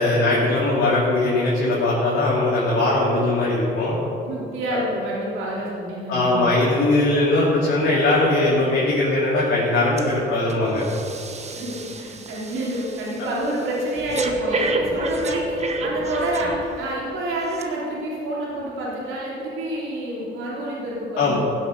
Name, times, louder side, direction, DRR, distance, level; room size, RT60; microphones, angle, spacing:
voice 1, 0.0-4.0 4.7-4.8 6.1-10.8 21.2-21.4, left 2 dB, 75° left, -9 dB, 3.5 m, -20 dB
voice 2, 4.2-6.5 11.5-21.4, right 1 dB, 90° right, -6 dB, 3.5 m, -28 dB
Breathing, 10.0-10.2 10.5-16.9 17.5-17.6, right 1 dB, 35° right, 1.1 m, -30 dB
15.5 x 8.1 x 5.5 m, 2.7 s
cardioid pair, 90°, 20 cm